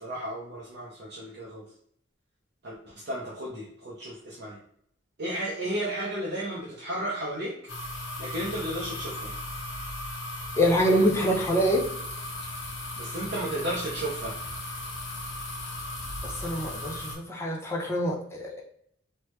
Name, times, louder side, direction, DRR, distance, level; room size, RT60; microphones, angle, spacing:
voice 1, 0.0-1.6 2.6-2.7 3.1-3.6 4.0-4.1 4.4-4.5 5.2-7.5 8.2-9.3 13.1-14.3, right 1 dB, 60° right, -5 dB, 0.6 m, -33 dB
sound 1, 7.7-17.2, left 1 dB, 80° left, 1.0 m, -36 dB
voice 2, 10.6-11.8 16.2-18.6, equal, 15° left, -2 dB, 0.6 m, -25 dB
3.2 x 2.0 x 3.1 m, 0.65 s
head